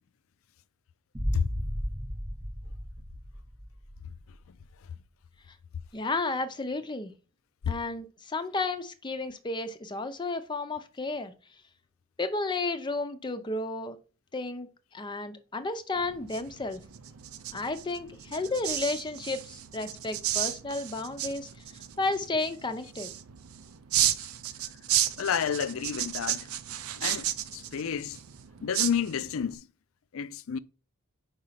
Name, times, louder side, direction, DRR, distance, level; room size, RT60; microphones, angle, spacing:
sound 1, 1.1-4.1, equal, 15° right, 0.9 m, -34 dB
voice 1, 5.9-7.1 7.7-11.3 12.2-14.0 14.3-16.8 17.5-23.1, left 3 dB, 20° left, 0.5 m, -32 dB
sound 2, 15.9-29.5, right 12 dB, 85° right, 0.6 m, -34 dB
voice 2, 25.2-26.4 27.0-27.3 27.5-28.2 28.6-29.6 30.1-30.6, left 7 dB, 75° left, 0.4 m, -30 dB
5.0 x 4.8 x 5.7 m
head